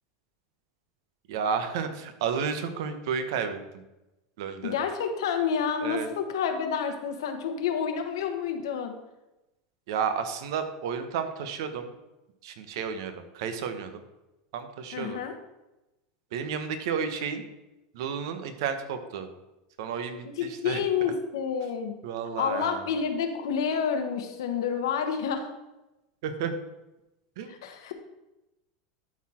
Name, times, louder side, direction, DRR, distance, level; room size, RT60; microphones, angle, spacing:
voice 1, 1.3-3.6 4.4-4.7 5.8-6.1 9.9-11.9 12.4-14.0 14.5-15.2 16.3-17.4 17.9-19.3 19.8-20.8 22.0-22.9 26.2-26.5 27.4-27.5, right 7 dB, 70° right, 8 dB, 1.0 m, -32 dB
voice 2, 4.6-9.0 14.9-15.3 20.2-21.9 22.4-25.5 27.5-27.9, left 7 dB, 90° left, 6 dB, 1.2 m, -29 dB
12.0 x 4.2 x 4.3 m, 0.97 s
supercardioid pair, 140°, 2 cm